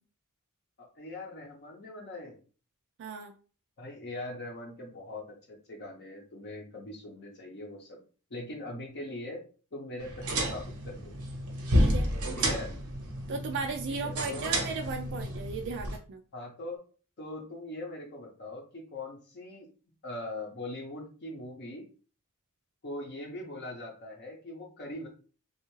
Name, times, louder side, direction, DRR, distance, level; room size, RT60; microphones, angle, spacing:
voice 1, 0.8-2.4 3.8-8.0 8.3-9.4 9.7-11.1 12.4-12.7 14.0-14.5 16.3-16.8 17.2-19.7 20.0-21.8 22.8-25.1, left 2 dB, 50° left, -2 dB, 0.7 m, -41 dB
voice 2, 3.0-3.3 11.7-12.6 13.3-16.2, right 4 dB, 55° right, 3 dB, 0.4 m, -36 dB
sound 1, 10.0-16.0, equal, 90° right, 0.9 m, -31 dB
3.3 x 2.4 x 3.1 m, 0.38 s
head